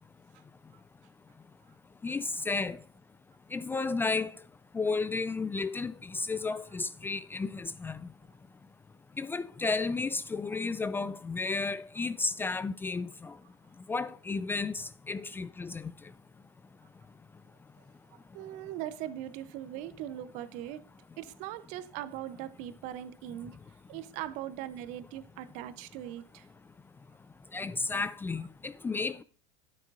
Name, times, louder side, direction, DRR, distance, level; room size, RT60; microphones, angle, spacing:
voice 1, 2.0-2.8 3.5-4.3 4.7-8.0 9.2-13.3 13.9-15.9 27.5-29.2, left 4 dB, 15° left, 0.4 m, -33 dB
voice 2, 18.1-20.8 21.2-23.6 23.9-26.5, right 12 dB, 55° right, 0.7 m, -40 dB
9.7 x 8.3 x 2.5 m
hypercardioid pair, 90°, 15 cm